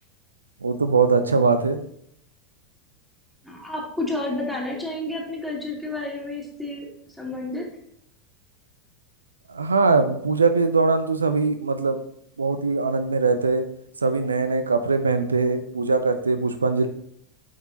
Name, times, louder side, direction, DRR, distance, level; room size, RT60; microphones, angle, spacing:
voice 1, 0.6-1.8 9.5-12.0 12.4-13.6 14.0-16.9, right 4 dB, 80° right, 10 dB, 0.5 m, -21 dB
voice 2, 3.4-6.9 7.2-7.7, left 2 dB, ahead, -3 dB, 2.6 m, -30 dB
8.9 x 6.1 x 2.9 m, 0.69 s
figure-of-eight pair, 85°, 0 cm